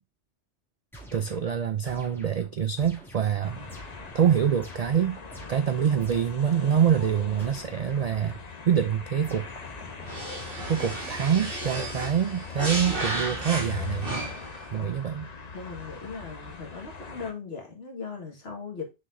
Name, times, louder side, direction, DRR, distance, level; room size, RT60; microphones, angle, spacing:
sound 1, 0.9-6.5 7.4-8.7 9.2-12.9, equal, ahead, 2.5 m, -48 dB
voice 1, 1.1-3.7 4.1-5.2 5.5-8.4 8.6-9.5 10.7-14.2 14.7-15.3, right 8 dB, 65° right, 0.4 m, -25 dB
sound 2, 3.4-17.3, left 6 dB, 40° left, 1.0 m, -41 dB
sound 3, 10.0-14.6, right 2 dB, 50° right, 2.0 m, -33 dB
voice 2, 15.5-18.9, left 5 dB, 60° left, 1.9 m, -39 dB
6.4 x 5.8 x 2.6 m
omnidirectional pair, 1.2 m